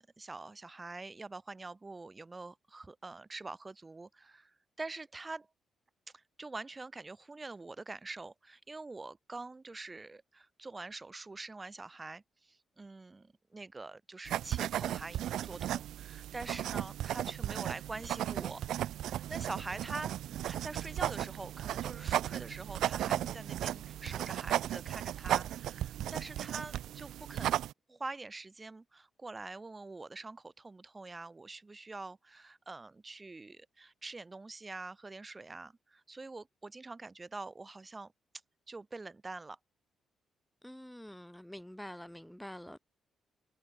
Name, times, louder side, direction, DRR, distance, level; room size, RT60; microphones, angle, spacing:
voice 1, 0.0-5.5 6.1-18.6 19.0-20.1 20.4-38.1 38.7-39.6, right 3 dB, 25° right, 4.0 m, -45 dB
sound 1, 14.3-27.7, right 12 dB, 80° right, 0.6 m, -35 dB
voice 2, 23.1-23.4 40.6-42.8, equal, 5° left, 2.8 m, -47 dB
supercardioid pair, 60°, 0 cm